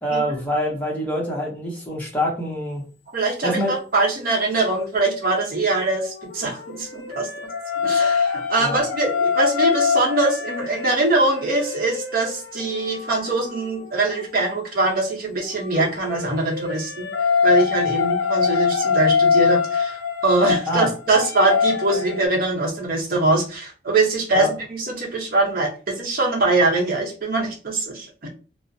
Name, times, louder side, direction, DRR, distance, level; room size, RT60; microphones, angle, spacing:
voice 1, 0.0-2.8 3.4-3.7 8.6-8.8 20.7-20.9 24.3-24.5, equal, 10° left, -3 dB, 0.7 m, -25 dB
voice 2, 3.1-7.3 7.8-17.1 17.4-28.3, right 2 dB, 50° right, -1 dB, 0.8 m, -22 dB
sound 1, 6.1-14.3 15.5-22.3, left 6 dB, 65° left, 0.4 m, -24 dB
2.3 x 2.0 x 2.6 m, 0.36 s
head